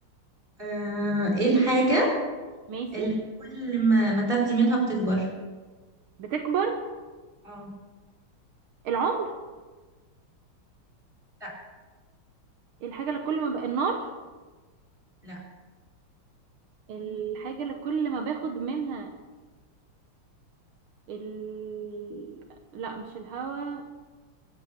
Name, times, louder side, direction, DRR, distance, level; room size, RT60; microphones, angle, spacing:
voice 1, 0.6-2.1 2.9-3.1 3.4-5.3 7.4-7.7 11.4-11.5 15.2-15.4, right 2 dB, 25° right, -1 dB, 5.0 m, -24 dB
voice 2, 2.7-3.1 6.2-6.9 8.9-9.3 12.8-14.1 16.9-19.1 21.1-22.5 22.7-23.8, right 5 dB, 75° right, 4 dB, 1.9 m, -31 dB
23.5 x 8.2 x 6.8 m, 1.3 s
omnidirectional pair, 2.3 m